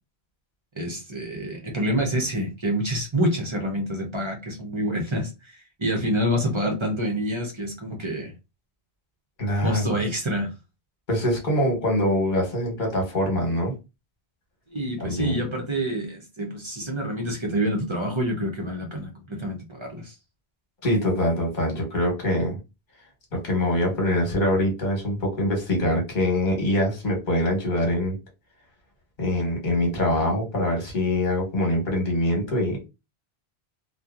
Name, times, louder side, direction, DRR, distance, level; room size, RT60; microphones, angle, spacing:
voice 1, 0.8-8.3 9.5-10.5 14.7-20.2, equal, 35° right, 0.5 m, -27 dB
voice 2, 9.4-10.0 11.1-13.7 15.0-15.4 20.8-22.6 23.4-28.1 29.2-32.9, left 1 dB, 45° left, 1.2 m, -24 dB
2.7 x 2.2 x 2.4 m
omnidirectional pair, 1.1 m